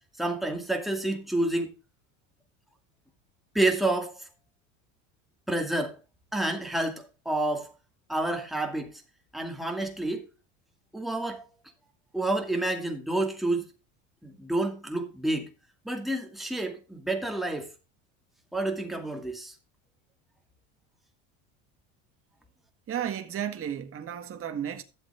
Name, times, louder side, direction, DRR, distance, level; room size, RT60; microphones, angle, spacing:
voice 1, 0.2-1.7 3.5-4.3 5.5-6.0 6.3-7.7 8.1-9.0 9.3-10.2 10.9-11.4 12.1-13.6 14.2-15.5 15.8-17.7 18.5-19.5, right 2 dB, ahead, 2.3 m, -29 dB
voice 2, 22.9-24.8, right 9 dB, 35° right, 1.7 m, -33 dB
12.5 x 7.7 x 3.6 m
supercardioid pair, 110°, 38 cm